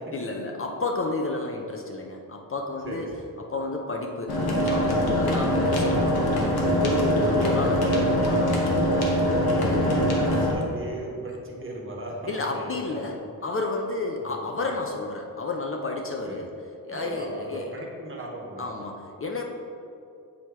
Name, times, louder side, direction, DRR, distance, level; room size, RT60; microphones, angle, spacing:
voice 1, 0.1-4.4 4.6-9.4 12.3-17.7 18.6-19.4, left 3 dB, 35° left, 1 dB, 0.5 m, -31 dB
sound 1, 4.3-10.5, equal, 80° left, 1.2 m, -23 dB
voice 2, 9.4-13.0 14.2-14.4 16.2-16.4 16.9-19.0, right 1 dB, 35° right, -2 dB, 1.2 m, -37 dB
8.3 x 3.0 x 4.6 m, 2.6 s
wide cardioid pair, 100°, 36 cm